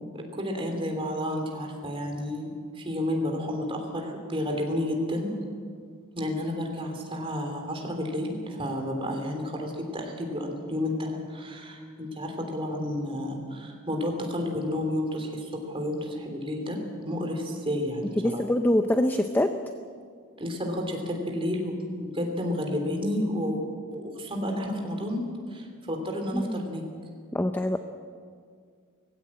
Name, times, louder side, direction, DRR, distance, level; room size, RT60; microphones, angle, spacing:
voice 1, 0.0-5.3 6.1-18.4 20.4-23.6 23.9-25.2 25.5-26.8, left 1 dB, 25° right, 2 dB, 3.1 m, -31 dB
voice 2, 18.2-19.5 26.3-26.6 27.3-27.8, left 1 dB, 10° left, 7 dB, 0.6 m, -24 dB
19.0 x 16.0 x 8.7 m, 2.1 s
head